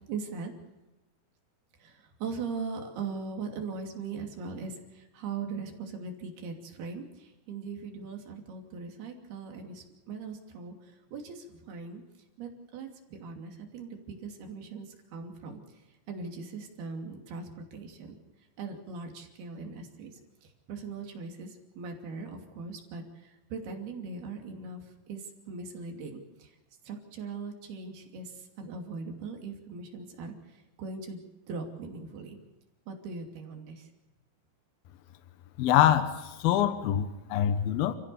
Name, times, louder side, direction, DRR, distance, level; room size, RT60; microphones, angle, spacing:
voice 1, 0.1-0.5 1.8-10.7 11.1-12.0 12.4-14.9 15.1-15.6 16.1-18.2 18.6-20.1 20.7-26.5 26.9-28.3 28.6-30.3 30.8-32.4 32.9-33.9, right 4 dB, 85° right, 3 dB, 4.8 m, -40 dB
voice 2, 35.6-36.1 36.4-38.0, left 11 dB, 75° left, 10 dB, 2.9 m, -24 dB
29.5 x 16.5 x 7.0 m, 1.1 s
omnidirectional pair, 4.4 m